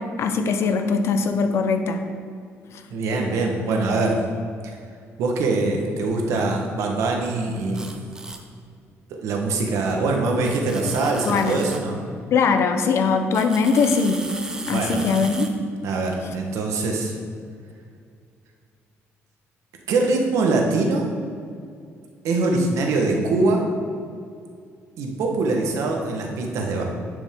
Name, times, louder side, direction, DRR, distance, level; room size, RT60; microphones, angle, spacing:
voice 1, 0.2-2.0 11.3-11.6 12.3-14.2 14.7-15.5, left 5 dB, 60° left, 7 dB, 0.7 m, -21 dB
voice 2, 2.9-4.2 4.6-4.7 5.2-7.9 9.2-12.0 14.7-15.1 15.8-17.1 19.9-21.1 22.2-23.7 25.0-26.8, right 3 dB, 80° right, 1 dB, 1.2 m, -23 dB
sound 1, 7.7-8.4 9.8-9.9 10.4-11.8 13.3-15.5, right 2 dB, 15° right, 0.7 m, -36 dB
10.5 x 5.2 x 3.6 m, 2.3 s
cardioid pair, 120°, 5 cm